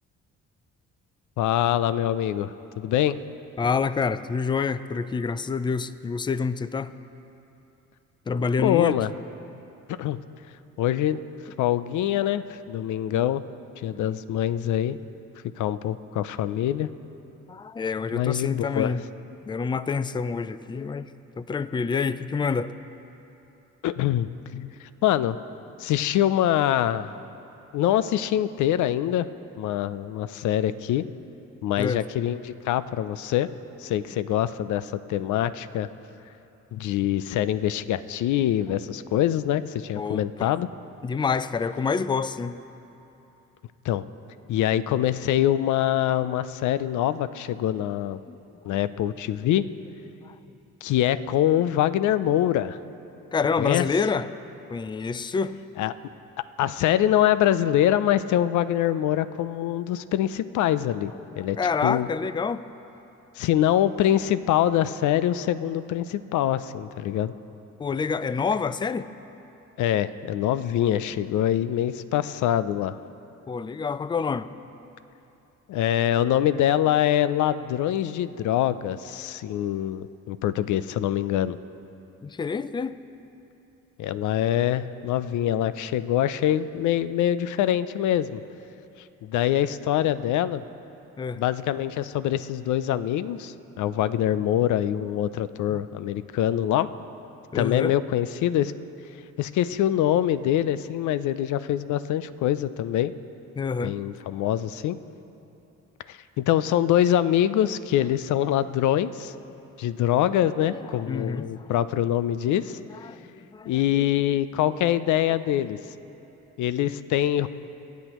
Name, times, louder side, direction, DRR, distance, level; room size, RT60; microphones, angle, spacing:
voice 1, 1.4-3.2 8.6-9.1 9.9-10.2 10.8-11.2 11.6-13.4 13.8-15.0 15.6-16.9 18.1-19.0 23.8-25.4 25.8-27.2 27.7-29.3 29.6-31.1 31.6-33.5 33.8-35.9 36.7-40.7 43.8-44.0 44.5-48.2 48.6-49.7 50.8-52.8 53.6-53.8 55.8-55.9 56.6-61.6 61.8-62.1 63.4-67.3 69.8-73.0 75.7-81.6 84.0-88.4 89.2-90.6 91.4-96.9 97.5-98.7 99.4-103.1 103.8-105.0 106.1-109.3 109.8-112.8 113.7-115.8 116.6-117.5, left 11 dB, 75° left, 15 dB, 0.5 m, -24 dB
voice 2, 3.6-6.9 8.3-8.9 13.9-14.1 17.5-19.1 19.5-21.1 21.4-22.7 31.8-32.0 40.0-40.5 41.0-42.6 48.3-48.4 48.7-48.8 50.2-50.4 53.3-54.3 54.7-55.5 61.3-62.6 67.8-69.1 73.5-74.5 82.2-82.9 91.2-91.4 95.7-95.8 97.5-97.9 103.6-104.0 109.5-109.6 110.7-111.7 113.0-114.0 115.6-115.7, left 5 dB, 15° left, 14 dB, 0.3 m, -28 dB
23.5 x 8.3 x 3.0 m, 2.9 s
cardioid pair, 90°, 30 cm